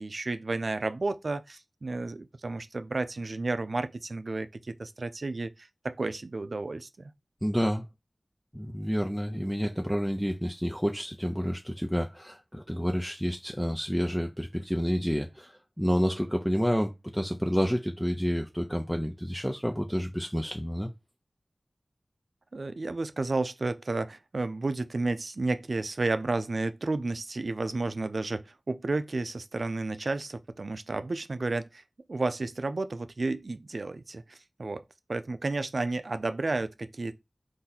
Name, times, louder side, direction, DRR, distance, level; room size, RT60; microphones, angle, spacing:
voice 1, 0.0-7.1 22.5-31.8 32.1-34.8 35.1-37.2, right 3 dB, 75° right, 0.4 m, -32 dB
voice 2, 7.4-7.9 8.5-20.9, equal, ahead, 0.5 m, -29 dB
4.2 x 2.6 x 3.9 m
wide cardioid pair, 55°, 0 cm